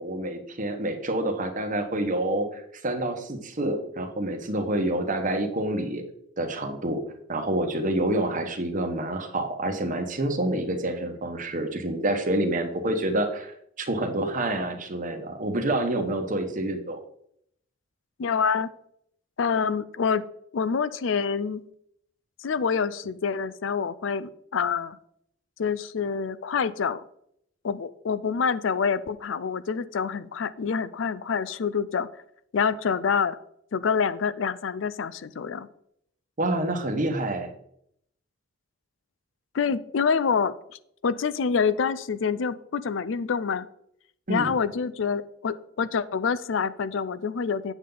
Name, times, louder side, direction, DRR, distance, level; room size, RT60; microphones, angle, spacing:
voice 1, 0.0-6.0 6.4-7.0 7.3-17.0 36.4-37.5 44.3-44.6, right 1 dB, 40° right, 6 dB, 1.2 m, -28 dB
voice 2, 18.2-18.7 19.4-20.2 20.5-21.6 22.4-25.0 25.6-27.0 27.6-32.1 32.5-33.4 33.7-35.7 39.5-40.5 41.0-43.7 44.3-47.7, left 6 dB, 65° left, 16 dB, 0.4 m, -26 dB
8.4 x 7.0 x 3.9 m, 0.70 s
head